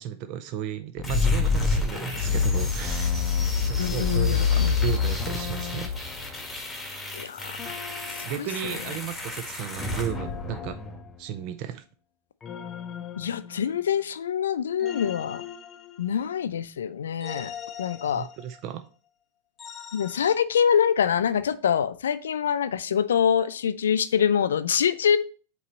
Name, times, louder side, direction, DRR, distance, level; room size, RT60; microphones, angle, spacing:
voice 1, 0.0-3.2 3.7-5.9 8.2-10.8 11.2-11.8 18.1-18.9, right 10 dB, 50° right, 10 dB, 0.5 m, -34 dB
sound 1, 1.0-1.2 2.8-3.5 5.2-6.1 7.6-8.3 10.0-11.5 12.4-14.0 14.8-16.4 17.2-18.7 19.6-20.3, left 8 dB, 25° left, 0.6 m, -40 dB
sound 2, 1.0-11.0, left 5 dB, 10° left, 1.7 m, -27 dB
voice 2, 3.8-4.8 7.1-8.0 8.4-8.7 13.2-15.4 16.0-17.5 17.8-18.3 19.9-25.2, left 8 dB, 75° left, 13 dB, 0.5 m, -25 dB
8.0 x 3.1 x 4.0 m, 0.39 s
hypercardioid pair, 95°, 0 cm